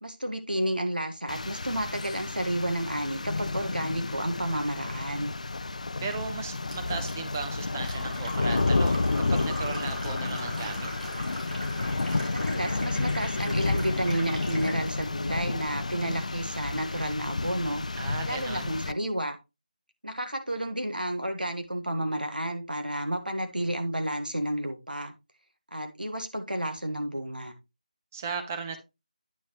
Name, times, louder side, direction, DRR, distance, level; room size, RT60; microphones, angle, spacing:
voice 1, 0.0-5.3 12.3-17.8 18.2-19.4 20.0-25.1 25.7-27.5, right 1 dB, 85° right, 6 dB, 1.5 m, -31 dB
Rain, 1.3-18.9, left 3 dB, 55° left, 0.4 m, -31 dB
voice 2, 6.0-10.9 18.0-18.7 28.1-28.8, right 5 dB, 20° right, 6 dB, 0.9 m, -36 dB
Fill (with liquid), 6.7-14.8, equal, 60° right, 3.2 m, -40 dB
9.2 x 5.6 x 3.0 m, 0.25 s
figure-of-eight pair, 160°, 5 cm